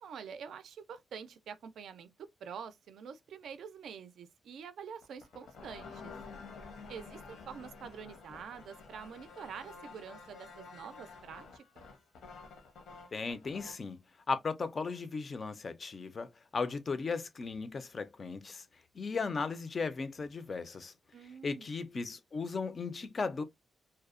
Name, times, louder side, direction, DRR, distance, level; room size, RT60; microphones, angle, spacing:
voice 1, 0.0-6.1 6.9-11.9 21.1-21.7, right 7 dB, 75° right, 0.3 m, -47 dB
sound 1, 5.0-13.9, left 4 dB, 75° left, 0.7 m, -50 dB
voice 2, 13.1-14.0 14.3-18.7 18.9-20.9 21.4-23.4, left 4 dB, 35° left, 0.3 m, -36 dB
2.6 x 2.0 x 2.4 m
wide cardioid pair, 150°, 0 cm